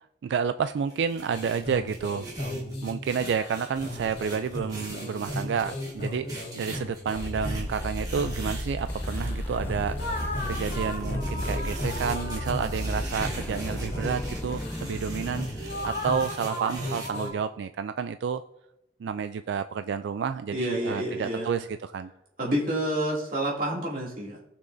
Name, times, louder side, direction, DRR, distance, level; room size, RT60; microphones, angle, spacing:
voice 1, 0.0-2.3 2.8-10.2 10.5-18.4 19.0-22.1, right 6 dB, 85° right, 11 dB, 0.3 m, -30 dB
sound 1, 0.9-9.3 10.0-17.1, right 2 dB, 25° right, 1.8 m, -42 dB
sound 2, 1.3-17.3, left 1 dB, 85° left, 2.4 m, -36 dB
sound 3, 7.1-16.3, left 1 dB, 10° left, 0.4 m, -34 dB
voice 2, 20.5-21.5 22.4-24.4, right 1 dB, 50° right, -4 dB, 2.5 m, -28 dB
18.0 x 6.0 x 2.6 m, 0.88 s
head